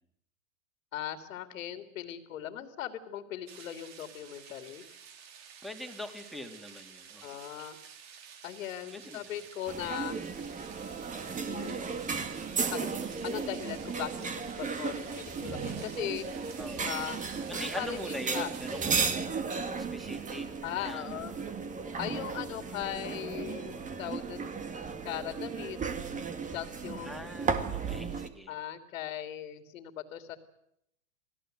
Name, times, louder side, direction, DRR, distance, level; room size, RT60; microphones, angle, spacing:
voice 1, 0.9-4.8 7.2-7.8 8.4-10.2 11.5-11.8 12.7-12.9 13.2-14.3 14.6-16.3 16.8-17.2 17.5-18.5 20.6-21.4 22.0-24.5 25.0-25.8 26.5-27.3 28.5-30.4, left 11 dB, 70° left, 8 dB, 3.0 m, -39 dB
sound 1, 3.5-19.1, right 7 dB, 40° right, 3.6 m, -51 dB
voice 2, 5.6-7.4 8.9-9.4 16.6-17.1 17.5-19.3 19.8-21.2 21.8-22.1 27.0-28.6, equal, ahead, 5 dB, 3.3 m, -43 dB
sound 2, 9.7-28.3, right 5 dB, 20° right, 2.1 m, -35 dB
28.5 x 18.5 x 8.0 m, 0.77 s
hypercardioid pair, 120°, 41 cm